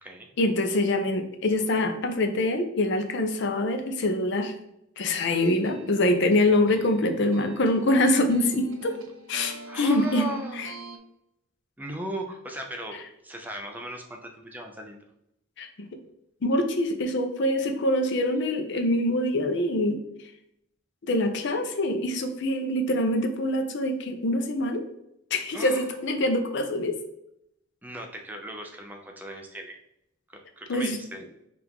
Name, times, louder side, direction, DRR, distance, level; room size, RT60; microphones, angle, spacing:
voice 1, 0.4-4.5 5.0-8.9 9.3-10.3 10.6-10.7 15.6-15.7 16.4-20.0 21.1-24.8 25.3-27.0 30.7-31.0, left 1 dB, 60° left, 6 dB, 0.5 m, -24 dB
sound 1, 5.2-11.0, right 2 dB, 75° right, 0.6 m, -43 dB
voice 2, 9.7-10.6 11.8-15.0 25.5-25.9 27.8-29.8 30.3-31.2, right 1 dB, 10° right, 2 dB, 0.5 m, -37 dB
4.5 x 2.5 x 3.5 m, 0.80 s
head